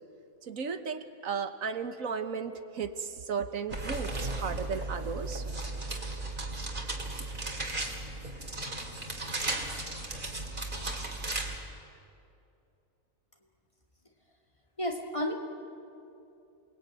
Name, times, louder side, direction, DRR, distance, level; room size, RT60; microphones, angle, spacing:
voice 1, 0.4-5.4, right 5 dB, 80° right, 9 dB, 1.6 m, -35 dB
sound 1, 3.7-11.6, right 2 dB, 40° right, 2.8 m, -35 dB
voice 2, 14.8-15.3, left 1 dB, 25° left, 2 dB, 2.3 m, -31 dB
28.0 x 20.5 x 9.2 m, 2.7 s
omnidirectional pair, 1.4 m